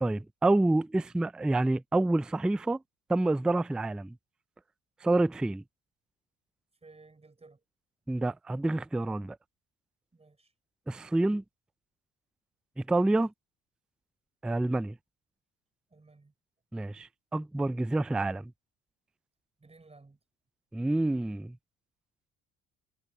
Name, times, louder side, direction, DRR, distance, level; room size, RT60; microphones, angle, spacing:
voice 1, 0.0-2.8 3.1-4.2 5.0-5.6 8.1-9.4 10.9-11.4 12.8-13.3 14.4-15.0 16.7-18.5 20.7-21.6, right 2 dB, 5° right, 0.3 m, -28 dB
voice 2, 6.8-7.6 10.1-10.5 15.9-16.3 19.6-20.2, right 3 dB, 20° right, 5.3 m, -56 dB
cardioid pair, 90°, 31 cm